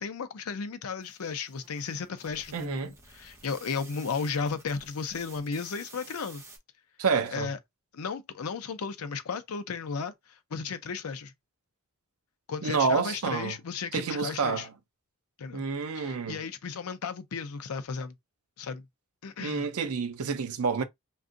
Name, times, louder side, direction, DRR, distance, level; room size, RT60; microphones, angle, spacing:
voice 1, 0.0-6.4 7.3-7.6 7.9-11.3 12.5-14.7 15.4-15.6 15.9-18.1 18.6-18.9 19.2-19.7, left 5 dB, 80° left, 0.6 m, -34 dB
sound 1, 1.0-6.6, right 3 dB, 15° right, 0.8 m, -51 dB
voice 2, 2.5-2.9 7.0-7.5 12.6-13.6 13.9-14.7 15.5-16.4 19.4-20.8, right 5 dB, 80° right, 0.6 m, -29 dB
2.6 x 2.3 x 3.7 m
head